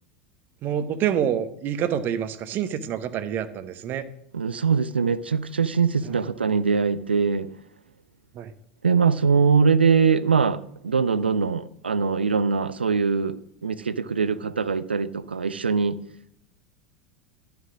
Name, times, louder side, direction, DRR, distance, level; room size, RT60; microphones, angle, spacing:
voice 1, 0.6-4.1 6.0-6.2 8.3-8.5, right 9 dB, 35° right, 13 dB, 1.0 m, -27 dB
voice 2, 4.3-7.5 8.8-13.4 13.6-16.0, right 5 dB, 80° right, 18 dB, 0.5 m, -22 dB
12.5 x 6.9 x 6.1 m, 0.76 s
figure-of-eight pair, 85°, 6 cm